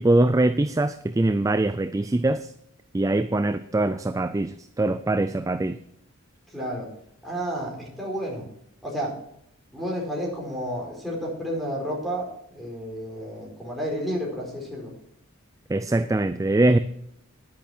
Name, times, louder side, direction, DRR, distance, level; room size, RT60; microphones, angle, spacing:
voice 1, 0.0-2.5 2.9-5.8 15.7-16.8, right 2 dB, 15° right, 12 dB, 0.4 m, -22 dB
voice 2, 6.5-6.9 7.2-8.5 8.8-9.2 9.7-14.9, equal, ahead, -2 dB, 4.6 m, -31 dB
10.5 x 10.5 x 4.4 m, 0.73 s
head